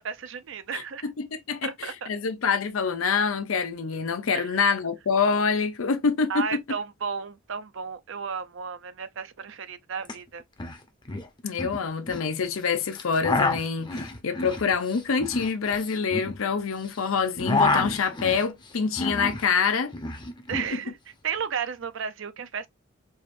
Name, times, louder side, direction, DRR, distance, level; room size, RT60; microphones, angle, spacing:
voice 1, 0.0-1.1 1.6-2.1 4.3-4.7 6.3-10.4 13.9-14.0 20.5-21.0 21.2-22.7, right 6 dB, 65° right, 0.6 m, -33 dB
voice 2, 0.7-6.6 11.4-19.9 20.6-20.7, left 5 dB, 85° left, 0.6 m, -26 dB
sound 1, 10.0-10.1 10.4-10.8 11.1-12.3 12.9-16.9 17.2-19.5 19.7-20.7, left 3 dB, 20° left, 0.7 m, -28 dB
4.8 x 2.6 x 2.5 m
head